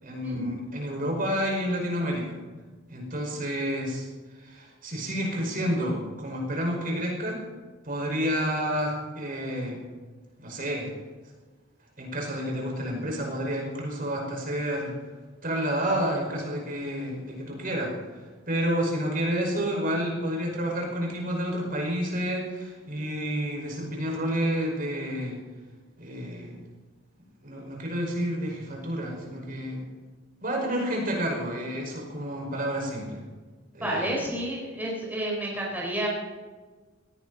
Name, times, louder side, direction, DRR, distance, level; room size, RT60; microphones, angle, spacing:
voice 1, 0.0-2.4 2.9-4.1 4.4-7.4 7.9-9.8 10.4-10.9 12.0-15.0 15.4-17.9 18.5-25.4 26.0-26.6 27.4-29.9 30.4-33.2 33.7-34.1, equal, 45° right, 0 dB, 5.3 m, -29 dB
voice 2, 33.8-36.1, right 1 dB, 10° right, -4 dB, 4.5 m, -30 dB
18.5 x 16.5 x 4.1 m, 1.4 s
head